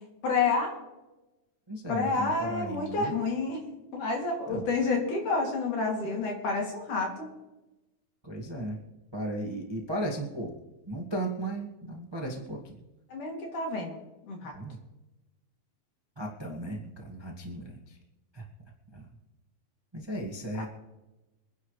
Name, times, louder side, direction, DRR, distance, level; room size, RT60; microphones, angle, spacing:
voice 1, 0.2-0.7 1.9-7.3 13.1-14.0 14.3-14.6 20.5-20.6, left 3 dB, 60° left, 0 dB, 4.1 m, -29 dB
voice 2, 1.7-3.1 4.5-4.6 8.2-8.8 9.1-10.5 10.9-12.8 14.5-14.8 16.1-18.0 18.3-18.4 18.9-19.1 19.9-20.7, right 1 dB, 35° right, -1 dB, 0.4 m, -35 dB
25.0 x 10.5 x 3.3 m, 1.0 s
omnidirectional pair, 4.1 m